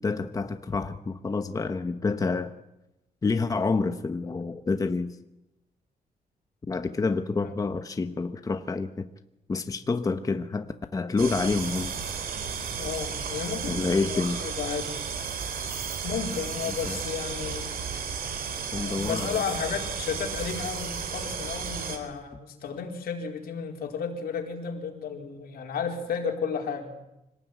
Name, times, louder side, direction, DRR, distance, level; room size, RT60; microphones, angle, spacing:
voice 1, 0.0-2.5 3.2-5.2 6.7-9.1 9.5-12.0 13.7-14.4 16.9-17.0 18.7-19.4, left 4 dB, 20° left, 8 dB, 1.1 m, -28 dB
sound 1, 11.2-22.0, right 6 dB, 70° right, 4.2 m, -33 dB
voice 2, 12.8-15.0 16.0-17.8 18.7-26.9, left 6 dB, 80° left, 3 dB, 4.4 m, -33 dB
26.0 x 19.0 x 9.5 m, 0.91 s
wide cardioid pair, 160°, 16 cm